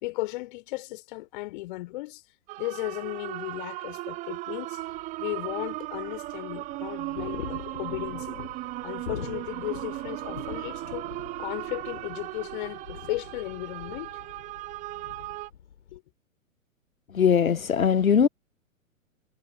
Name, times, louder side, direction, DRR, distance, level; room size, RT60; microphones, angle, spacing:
voice 1, 0.0-2.2 2.6-4.8 5.2-8.3 8.8-11.1 11.4-14.2 15.9-16.0, left 20 dB, 35° left, 4.2 m, -35 dB
sound 1, 2.5-15.5, right 18 dB, 20° right, 1.0 m, -37 dB
sound 2, 4.8-16.0, left 9 dB, 55° left, 3.6 m, -44 dB
voice 2, 17.1-18.3, left 7 dB, 80° left, 0.8 m, -20 dB
figure-of-eight pair, 115°, 41 cm